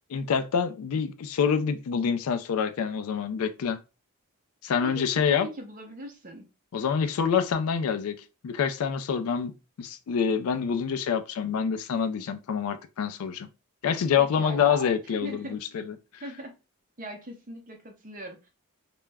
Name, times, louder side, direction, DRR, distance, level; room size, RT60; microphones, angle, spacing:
voice 1, 0.1-3.8 4.6-5.5 6.7-9.5 9.8-13.5 13.8-15.9, left 7 dB, 75° left, 0.3 m, -26 dB
voice 2, 4.8-6.5 14.2-15.6 16.2-16.5 17.0-18.4, right 1 dB, 35° right, 0.6 m, -40 dB
2.3 x 2.0 x 3.3 m
head